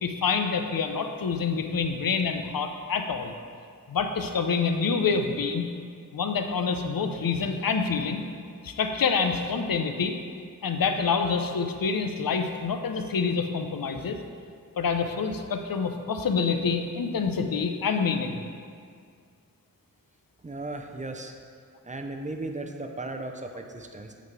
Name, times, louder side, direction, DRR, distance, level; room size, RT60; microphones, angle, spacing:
voice 1, 0.0-3.4 3.9-5.7 6.1-8.2 8.6-10.2 10.6-14.2 14.8-18.4, left 5 dB, 85° left, 6 dB, 0.6 m, -27 dB
voice 2, 20.4-21.3 21.8-24.1, right 2 dB, 20° right, 4 dB, 0.6 m, -36 dB
8.2 x 4.0 x 4.6 m, 2.1 s
wide cardioid pair, 80°, 34 cm